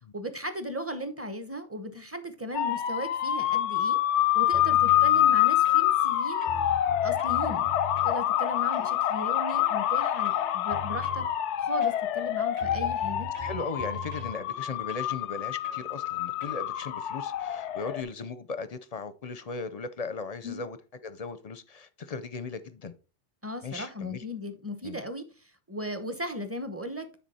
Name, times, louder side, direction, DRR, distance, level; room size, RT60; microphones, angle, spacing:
voice 1, 0.1-4.0 4.3-6.5 7.0-7.7 8.0-11.3 11.6-13.3 20.4-20.6 23.4-27.1, equal, 15° right, 0.8 m, -37 dB
sound 1, 2.5-18.0, left 12 dB, 90° left, 0.9 m, -26 dB
sound 2, 4.5-5.1 5.6-6.1 6.4-8.2 8.7-9.0 9.5-9.8 10.2-11.3 11.8-12.3 12.6-14.4 14.9-15.1 15.6-15.9 16.4-16.6, left 1 dB, 35° right, 1.0 m, -41 dB
voice 2, 4.8-5.3 13.4-20.8 21.0-22.9 23.6-24.2 24.8-25.0, left 4 dB, 45° left, 0.5 m, -37 dB
9.5 x 4.1 x 4.1 m
omnidirectional pair, 1.2 m